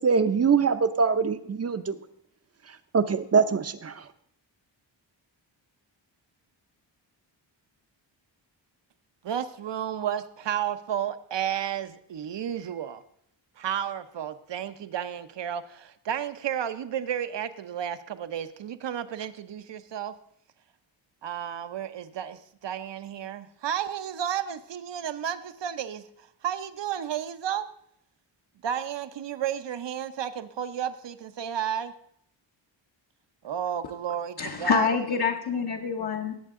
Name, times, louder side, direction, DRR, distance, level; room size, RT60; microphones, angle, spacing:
voice 1, 0.0-2.0 2.9-4.0, right 5 dB, 35° right, 11 dB, 0.7 m, -23 dB
voice 2, 9.2-13.0 13.6-20.1 21.2-27.7 28.6-31.9 33.4-35.0, right 9 dB, 65° right, 11 dB, 0.9 m, -32 dB
voice 3, 34.4-36.3, left 6 dB, 55° left, 0 dB, 1.1 m, -26 dB
18.5 x 8.0 x 3.7 m, 0.70 s
wide cardioid pair, 135°, 46 cm